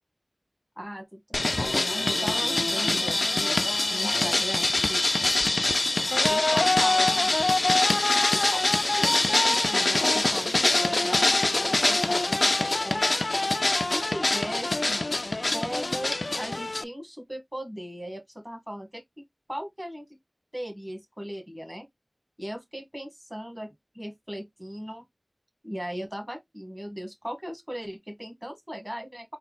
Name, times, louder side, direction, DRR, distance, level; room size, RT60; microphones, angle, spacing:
voice 1, 0.8-3.6 3.9-5.0 6.3-7.6 8.3-13.0 13.9-15.1 15.5-19.0 19.5-20.1 20.5-21.9 22.4-25.0 25.6-29.4, equal, 10° right, 1.9 m, -38 dB
sound 1, 1.3-16.8, left 2 dB, 70° left, 0.3 m, -24 dB
4.2 x 2.3 x 4.0 m
wide cardioid pair, 45°, 0 cm